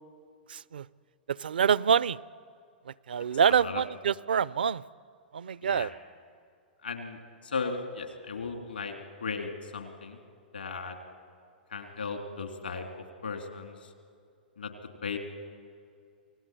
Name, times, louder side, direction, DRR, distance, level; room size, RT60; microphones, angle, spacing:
voice 1, 0.5-0.9 1.3-2.2 2.9-4.8 5.3-5.9, right 7 dB, 70° right, 21 dB, 0.5 m, -26 dB
voice 2, 6.8-8.9 9.2-10.2 10.5-11.0 11.7-13.9 14.6-14.7 15.0-15.2, left 4 dB, 80° left, 5 dB, 3.3 m, -36 dB
28.0 x 18.0 x 9.1 m, 2.3 s
figure-of-eight pair, 105°, 5 cm